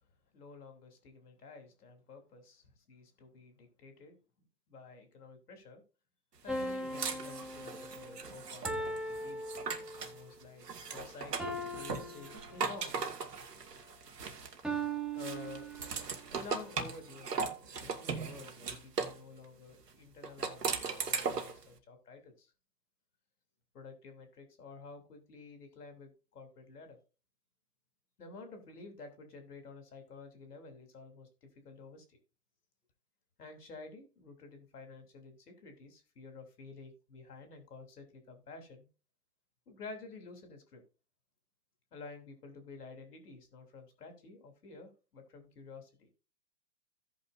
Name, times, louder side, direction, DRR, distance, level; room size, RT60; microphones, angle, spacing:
voice 1, 0.3-4.2 4.7-5.8 6.4-9.5 9.9-13.0 15.1-15.7 16.3-22.5 23.7-27.0 28.2-32.2 33.4-38.9 39.7-40.8 41.9-46.1, left 4 dB, 70° left, 6 dB, 3.2 m, -51 dB
sound 1, 6.5-10.2 11.4-13.0 14.6-16.2, right 2 dB, ahead, 1.1 m, -40 dB
sound 2, 6.5-10.2 10.6-14.8 15.2-19.2 20.2-21.6, right 5 dB, 80° right, 1.9 m, -38 dB
16.5 x 5.7 x 2.6 m, 0.32 s
hypercardioid pair, 125°, 47 cm